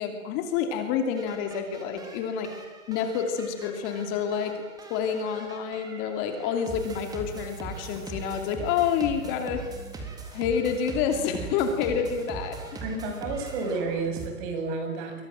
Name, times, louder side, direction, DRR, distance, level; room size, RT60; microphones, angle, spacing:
voice 1, 0.0-2.5 2.9-4.6 4.9-9.6 10.3-12.6, left 7 dB, 30° left, 5 dB, 2.9 m, -28 dB
sound 1, 1.1-14.3, right 3 dB, 10° right, 3.6 m, -41 dB
voice 2, 12.8-15.2, right 3 dB, 35° right, 5 dB, 7.2 m, -31 dB
27.5 x 23.5 x 7.7 m, 1.3 s
hypercardioid pair, 150°, 41 cm